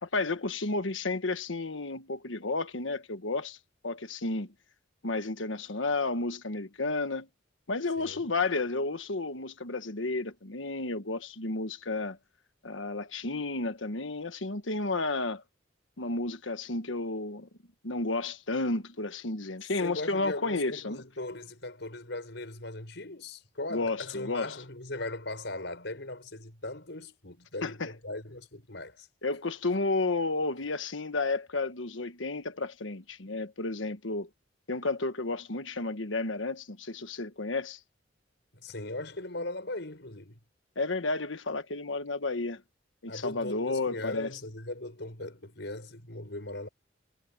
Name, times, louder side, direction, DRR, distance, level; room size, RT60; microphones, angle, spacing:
voice 1, 0.0-3.6 3.8-4.5 5.0-7.3 7.7-12.2 12.6-15.4 16.0-17.5 17.8-21.0 23.7-24.5 27.6-27.9 29.2-34.3 34.7-37.8 40.7-42.6 43.0-44.3, left 3 dB, 80° left, 1.4 m, -32 dB
voice 2, 8.0-8.3 19.8-29.1 38.5-40.4 43.1-46.7, left 2 dB, 65° left, 7.2 m, -39 dB
head